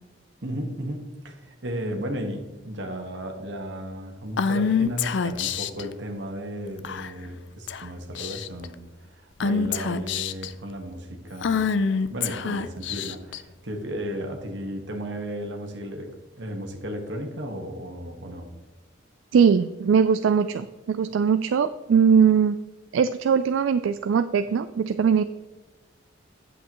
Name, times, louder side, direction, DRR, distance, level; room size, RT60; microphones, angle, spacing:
voice 1, 0.4-11.7 12.1-18.5, equal, 65° right, 3 dB, 1.4 m, -34 dB
Female speech woman speaking / Whispering, 4.4-5.8 6.8-7.3 7.7-7.8 8.1-8.7 9.4-10.5 11.4-13.4, left 5 dB, 70° left, 0.4 m, -26 dB
voice 2, 19.3-22.6 22.9-25.2, right 6 dB, 85° right, 11 dB, 0.3 m, -20 dB
8.5 x 8.0 x 3.0 m, 1.2 s
head